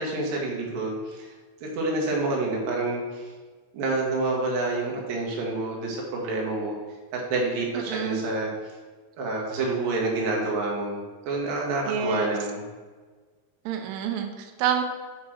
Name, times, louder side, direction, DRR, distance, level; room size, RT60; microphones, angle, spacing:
voice 1, 0.0-1.3 1.6-3.3 3.7-6.7 7.1-8.5 9.2-12.6, right 2 dB, 60° right, -2 dB, 3.0 m, -28 dB
voice 2, 7.9-8.3 11.9-12.4 13.7-14.8, right 7 dB, 90° right, 5 dB, 3.3 m, -28 dB
7.8 x 5.3 x 6.5 m, 1.4 s
omnidirectional pair, 5.4 m